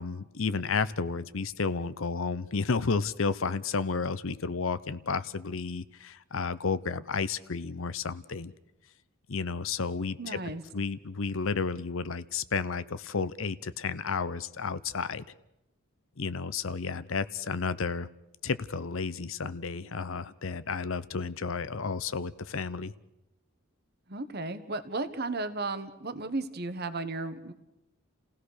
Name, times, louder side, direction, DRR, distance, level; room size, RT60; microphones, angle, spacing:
voice 1, 0.0-8.5 9.3-10.4 10.7-15.2 16.2-18.1 18.4-22.9, left 4 dB, 65° left, 15 dB, 0.7 m, -32 dB
voice 2, 10.2-10.6 24.1-27.5, right 3 dB, 50° right, 11 dB, 1.4 m, -34 dB
29.5 x 16.5 x 6.5 m, 0.92 s
head